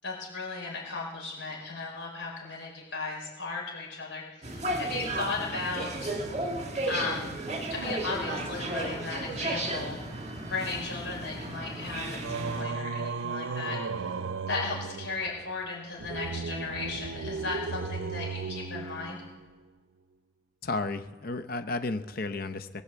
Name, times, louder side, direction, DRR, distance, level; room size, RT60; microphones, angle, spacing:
voice 1, 0.0-6.1 6.9-7.3 7.7-10.0 10.5-13.8 14.5-19.2, left 3 dB, 75° left, -2 dB, 5.4 m, -36 dB
sound 1, 4.4-12.6, right 2 dB, 35° right, 1.8 m, -34 dB
Singing, 12.2-19.6, right 4 dB, 75° right, 0.6 m, -35 dB
voice 2, 20.6-22.8, left 3 dB, 50° left, 10 dB, 0.7 m, -33 dB
20.0 x 7.1 x 8.1 m, 1.3 s
head